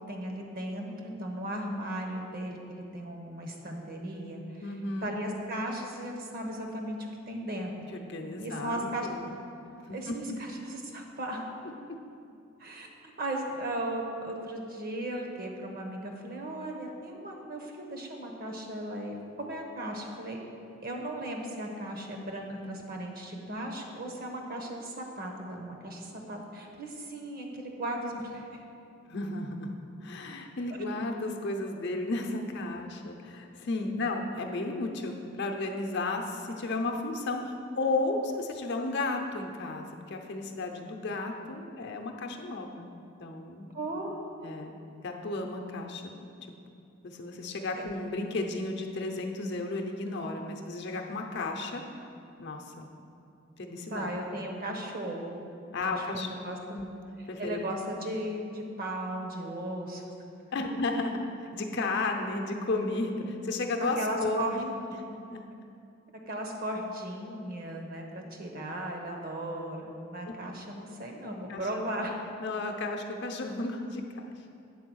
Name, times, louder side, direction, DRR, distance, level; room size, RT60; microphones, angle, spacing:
voice 1, 0.1-4.6 5.0-7.0 7.3-7.7 8.4-9.1 9.9-11.5 12.6-20.4 20.8-28.5 30.7-30.8 43.7-44.2 47.8-47.9 53.9-55.4 55.8-56.6 57.2-60.0 64.0-64.6 64.9-65.1 66.3-72.2, right 1 dB, 50° right, 2 dB, 1.0 m, -36 dB
voice 2, 4.6-5.1 7.9-9.4 9.9-10.4 29.0-29.7 30.0-42.9 43.2-43.7 44.4-44.8 45.0-46.1 47.0-51.8 52.4-52.9 53.6-54.2 55.7-56.3 56.7-56.8 57.3-57.6 60.5-61.2 61.5-64.7 65.3-65.4 70.2-70.3 71.5-72.1 72.4-74.6, left 2 dB, 55° left, 3 dB, 0.7 m, -33 dB
8.5 x 4.5 x 6.2 m, 2.6 s
head